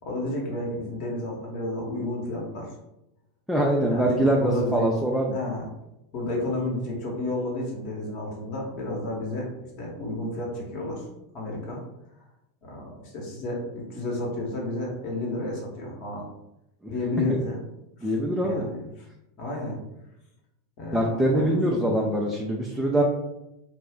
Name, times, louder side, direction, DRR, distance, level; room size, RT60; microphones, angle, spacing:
voice 1, 0.0-2.7 3.9-4.9 5.3-5.7 6.1-9.5 9.8-11.0 11.3-11.8 12.6-16.2 16.9-17.6 18.0-18.1 18.4-19.0 19.4-19.8 20.8-22.1, left 2 dB, 50° left, -1 dB, 1.0 m, -31 dB
voice 2, 3.5-5.4 18.0-18.6 20.9-23.0, right 1 dB, 5° right, -2 dB, 0.5 m, -23 dB
2.4 x 2.1 x 3.5 m, 0.88 s
figure-of-eight pair, 90°, 0 cm